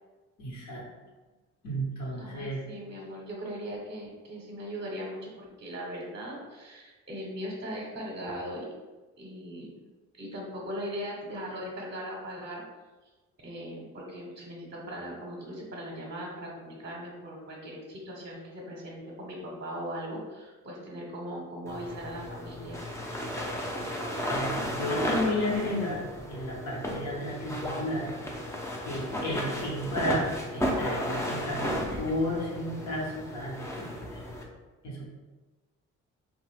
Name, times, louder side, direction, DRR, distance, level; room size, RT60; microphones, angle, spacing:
voice 1, 0.4-0.8 1.6-2.6 24.2-26.0 26.3-28.1 28.8-31.7 32.0-34.2 34.8-35.1, left 1 dB, 65° left, -3 dB, 1.1 m, -32 dB
voice 2, 2.2-8.7 9.2-9.8 10.2-12.6 13.4-22.8, equal, 35° right, -3 dB, 0.8 m, -39 dB
sound 1, 21.7-34.4, equal, 10° left, 0.5 m, -34 dB
2.8 x 2.3 x 3.3 m, 1.2 s
cardioid pair, 90°, 30 cm